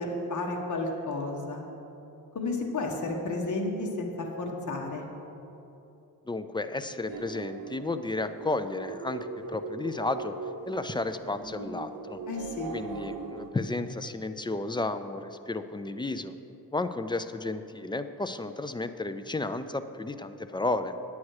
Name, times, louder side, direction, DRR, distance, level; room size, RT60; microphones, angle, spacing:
voice 1, 0.0-1.6 2.3-5.0 12.3-12.7, left 2 dB, 50° left, 0 dB, 1.4 m, -32 dB
voice 2, 6.3-10.4 10.7-12.2 12.7-16.3 16.7-20.9, left 2 dB, 15° left, 10 dB, 0.4 m, -32 dB
sound 1, 6.9-13.5, right 4 dB, 70° right, 1.0 m, -40 dB
10.5 x 8.4 x 4.8 m, 2.9 s
cardioid pair, 100°, 37 cm